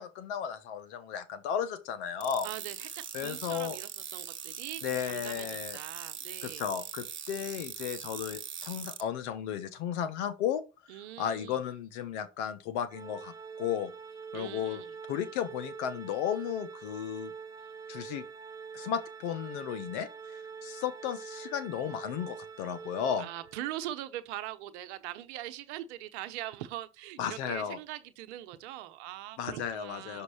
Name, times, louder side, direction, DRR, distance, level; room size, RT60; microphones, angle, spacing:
voice 1, 0.0-2.5 3.1-3.8 4.8-5.8 6.4-10.6 10.9-13.9 14.3-14.8 15.1-17.3 17.9-18.2 18.7-23.3 27.2-27.8 29.4-30.2, left 9 dB, 90° left, 1.2 m, -34 dB
sound 1, 2.2-9.0, right 8 dB, 35° right, 1.3 m, -41 dB
voice 2, 2.4-6.6 10.9-11.6 14.3-14.9 23.2-30.2, right 14 dB, 90° right, 0.9 m, -42 dB
Organ, 12.9-23.8, right 6 dB, 10° right, 1.4 m, -45 dB
6.4 x 5.2 x 4.9 m
supercardioid pair, 75°, 32 cm